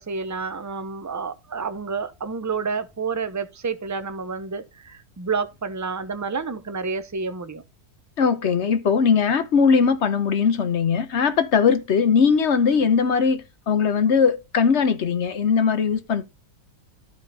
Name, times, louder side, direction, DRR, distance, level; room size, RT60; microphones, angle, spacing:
voice 1, 0.0-7.6, right 5 dB, 30° right, 0.3 m, -29 dB
voice 2, 8.2-13.4 13.7-16.2, left 6 dB, 55° left, 1.1 m, -20 dB
12.0 x 5.1 x 4.0 m
omnidirectional pair, 1.6 m